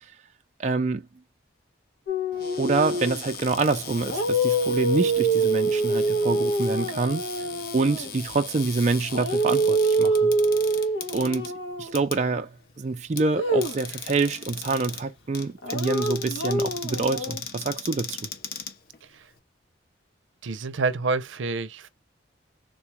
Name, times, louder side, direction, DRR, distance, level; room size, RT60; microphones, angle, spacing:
voice 1, 0.6-1.1 2.6-7.2 7.7-10.3 11.1-11.5 11.8-12.5 12.8-18.3, right 3 dB, 35° right, 0.4 m, -26 dB
sound 1, 2.1-3.2 4.0-8.1 9.1-11.9 13.4-13.8 15.6-17.4, right 2 dB, 85° left, 1.1 m, -25 dB
Cupboard open or close, 2.3-19.4, left 7 dB, 50° left, 0.7 m, -39 dB
voice 2, 20.4-21.9, right 3 dB, 85° right, 0.6 m, -28 dB
3.6 x 2.3 x 2.9 m
head